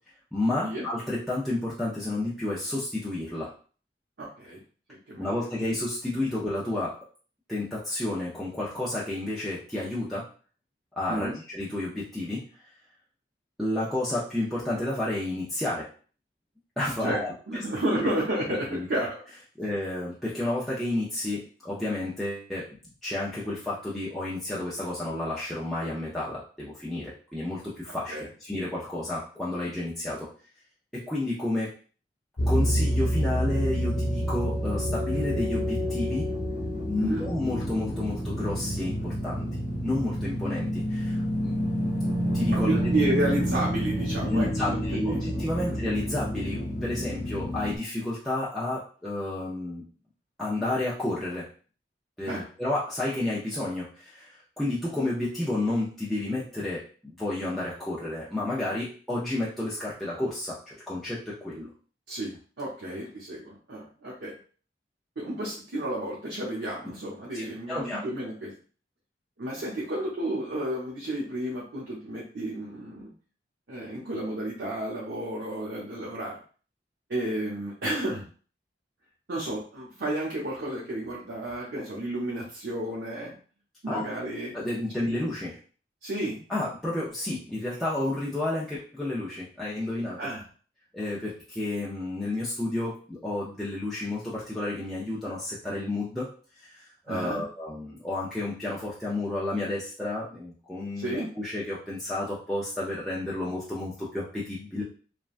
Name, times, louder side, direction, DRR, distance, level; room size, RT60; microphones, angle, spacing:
voice 1, 0.3-3.5 5.2-6.9 7.5-10.2 10.9-12.4 13.6-15.9 16.8-17.6 17.9-18.0 18.7-18.9 19.6-22.6 23.0-30.3 30.9-31.7 32.5-36.3 36.9-39.5 39.8-41.7 42.3-42.9 44.3-49.8 50.4-51.4 52.2-61.7 67.3-68.0 83.9-84.0 84.5-85.6 86.5-90.2 90.9-96.3 96.6-104.8, left 1 dB, ahead, -9 dB, 0.5 m, -31 dB
voice 2, 4.2-4.6 4.9-5.3 11.1-11.4 17.0-19.2 28.1-28.3 37.0-37.2 42.5-45.3 45.6-45.8 52.2-52.4 62.1-64.3 65.2-68.5 69.4-73.1 73.7-76.4 77.1-78.2 79.3-83.3 83.8-84.5 85.0-85.1 86.0-86.4 90.2-90.4 97.1-97.4 101.0-101.3, right 1 dB, 75° right, -5 dB, 0.8 m, -32 dB
sound 1, 32.4-47.8, equal, 85° left, 0.9 m, -28 dB
3.3 x 2.2 x 2.4 m, 0.41 s
head